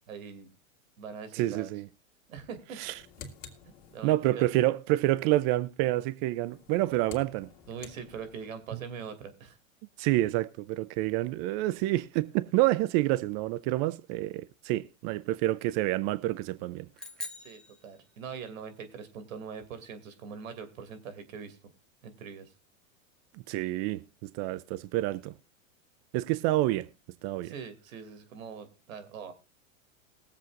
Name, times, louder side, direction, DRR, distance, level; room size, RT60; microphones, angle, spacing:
voice 1, 0.1-0.5 1.0-1.7 2.3-2.8 3.7-4.5 7.7-9.6 17.4-21.6 22.0-22.5 27.4-29.3, right 6 dB, 80° right, 2.7 m, -42 dB
voice 2, 1.3-1.8 2.8-2.9 4.0-7.5 10.0-16.9 23.5-25.3 26.1-26.9 27.2-27.5, right 16 dB, 35° right, 0.5 m, -28 dB
sound 1, 2.7-4.4 6.4-8.7, left 5 dB, 55° left, 2.2 m, -50 dB
sound 2, 17.0-18.6, left 1 dB, ahead, 1.3 m, -44 dB
21.0 x 7.7 x 2.5 m
hypercardioid pair, 125°, 40 cm